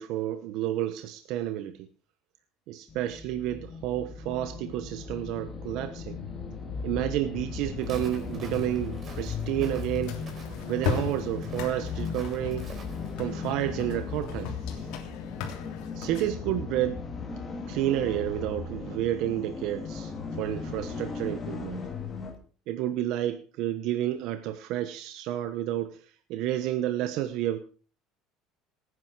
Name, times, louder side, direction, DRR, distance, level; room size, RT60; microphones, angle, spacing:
voice 1, 0.0-1.9 2.7-6.2 6.8-10.2 10.7-12.7 13.2-14.9 15.9-17.0 17.7-21.8 22.7-27.6, right 13 dB, 65° right, 10 dB, 1.0 m, -30 dB
sound 1, 2.9-22.3, left 5 dB, 20° left, 3.0 m, -37 dB
Walk footsteps, 7.8-13.1, right 3 dB, 30° right, 4.1 m, -47 dB
sound 2, 10.0-16.3, left 6 dB, 75° left, 3.3 m, -37 dB
17.5 x 9.8 x 4.8 m, 0.38 s
cardioid pair, 145°, 0 cm